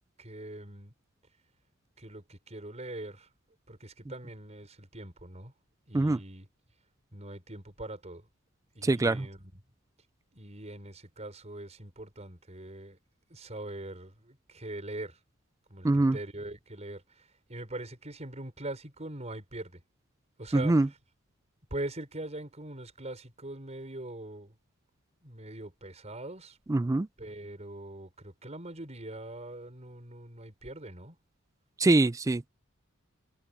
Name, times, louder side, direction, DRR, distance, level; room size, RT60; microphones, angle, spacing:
voice 1, 0.2-0.9 2.0-3.3 3.7-5.5 5.9-6.5 7.1-8.3 8.8-9.5 10.3-13.0 13.3-15.2 15.7-19.8 20.4-20.7 21.7-24.6 25.2-26.6 27.2-31.2, right 1 dB, 30° right, 5.4 m, -42 dB
voice 2, 8.8-9.3 15.8-16.2 20.5-20.9 26.7-27.1 31.8-32.5, right 2 dB, 15° right, 0.3 m, -24 dB
head